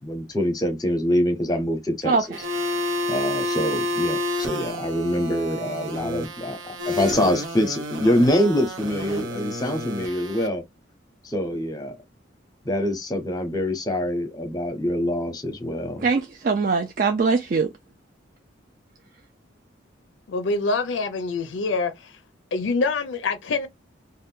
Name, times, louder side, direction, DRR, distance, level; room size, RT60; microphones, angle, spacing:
voice 1, 0.0-2.2 3.1-10.6 11.2-11.9 12.6-16.0, left 1 dB, 20° left, 0.7 m, -25 dB
voice 2, 2.0-2.4 16.0-17.7, right 4 dB, 45° right, 0.4 m, -22 dB
sound 1, 2.3-10.5, left 1 dB, 85° right, 0.8 m, -30 dB
voice 3, 20.3-22.2 22.5-23.7, left 3 dB, 70° left, 0.4 m, -25 dB
2.6 x 2.1 x 3.5 m
head